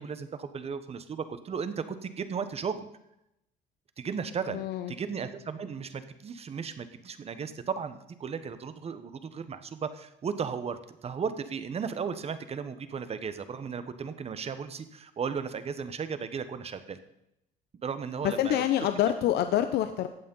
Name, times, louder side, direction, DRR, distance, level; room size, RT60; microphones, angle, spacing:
voice 1, 0.0-2.9 4.0-17.0 17.7-18.7, right 6 dB, 35° right, 12 dB, 1.2 m, -35 dB
voice 2, 4.5-4.9 18.2-20.1, left 11 dB, 75° left, 9 dB, 0.8 m, -26 dB
14.5 x 8.6 x 5.5 m, 0.84 s
cardioid pair, 110°, 17 cm